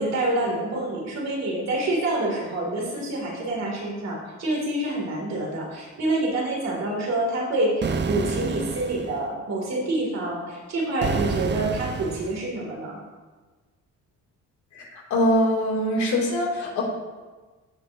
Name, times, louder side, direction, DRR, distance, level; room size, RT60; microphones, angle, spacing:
voice 1, 0.0-13.0, right 1 dB, 60° right, -2 dB, 2.9 m, -27 dB
sound 1, 7.8-9.2 11.0-12.4, right 5 dB, 35° right, 0.6 m, -29 dB
voice 2, 15.1-16.8, left 1 dB, 70° left, -3 dB, 3.0 m, -22 dB
15.5 x 5.4 x 2.9 m, 1.3 s
cardioid pair, 90°, 30 cm